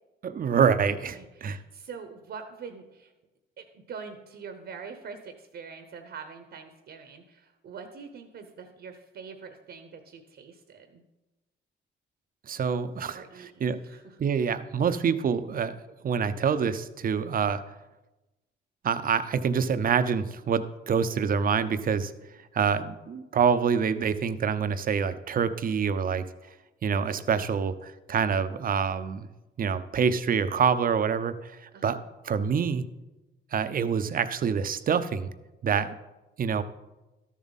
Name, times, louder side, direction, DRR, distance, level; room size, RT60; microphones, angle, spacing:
voice 1, 0.2-1.6 12.5-13.2 13.6-13.8 14.2-15.7 16.0-17.6 18.8-22.1 22.5-26.3 26.8-29.3 29.6-32.0 32.2-32.8 33.5-35.3 35.6-35.9 36.4-36.6, right 6 dB, 45° right, 12 dB, 0.6 m, -26 dB
voice 2, 1.1-3.1 3.6-11.0 13.1-14.2 31.7-32.0, right 5 dB, 65° right, 7 dB, 1.0 m, -44 dB
12.5 x 7.3 x 4.1 m, 1.0 s
cardioid pair, 90°, 20 cm